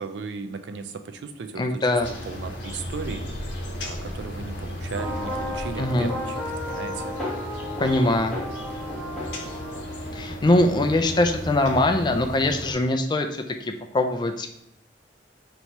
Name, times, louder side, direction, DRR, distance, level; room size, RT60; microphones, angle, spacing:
voice 1, 0.0-1.9 2.3-3.3 3.8-6.5 6.7-7.1, right 5 dB, 75° right, 9 dB, 0.4 m, -36 dB
voice 2, 1.6-2.1 5.8-6.1 7.8-8.4 10.1-14.5, left 2 dB, 25° left, 5 dB, 0.4 m, -22 dB
sound 1, 2.0-12.7, left 1 dB, 85° left, 0.9 m, -35 dB
sound 2, 4.9-10.0, left 1 dB, 5° left, 0.9 m, -34 dB
Trumpet, 5.3-11.8, right 2 dB, 40° right, 1.2 m, -42 dB
3.0 x 2.7 x 4.5 m, 0.77 s
head